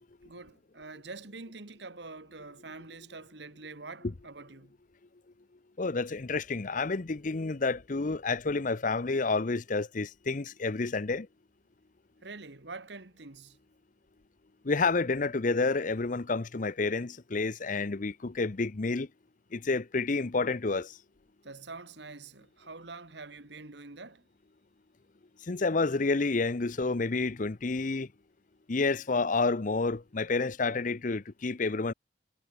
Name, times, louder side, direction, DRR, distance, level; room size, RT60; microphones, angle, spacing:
voice 1, 0.3-4.7 12.2-13.6 21.4-24.2, right 3 dB, 65° right, 1.7 m, -45 dB
voice 2, 5.8-11.3 14.7-19.1 19.5-20.9 25.5-28.1 28.7-31.9, left 3 dB, 45° left, 0.7 m, -29 dB
head